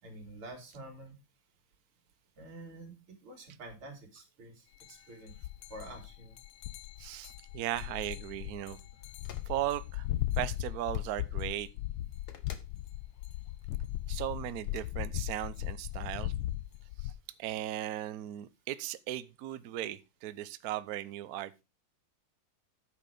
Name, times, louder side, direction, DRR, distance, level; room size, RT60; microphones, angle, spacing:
voice 1, 0.0-1.1 2.4-5.3 5.7-6.4, right 1 dB, 85° right, 3.6 m, -48 dB
sound 1, 4.8-4.9 5.3-17.1, left 14 dB, 85° left, 1.6 m, -37 dB
voice 2, 7.0-8.8 9.5-10.1 10.4-11.7 14.1-16.3 17.0-17.1 17.4-21.6, right 13 dB, 70° right, 0.9 m, -37 dB
sound 2, 9.2-9.5 10.8-11.1 12.3-12.8 14.6-14.9, left 7 dB, 55° left, 1.6 m, -52 dB
9.9 x 6.2 x 4.9 m
omnidirectional pair, 2.3 m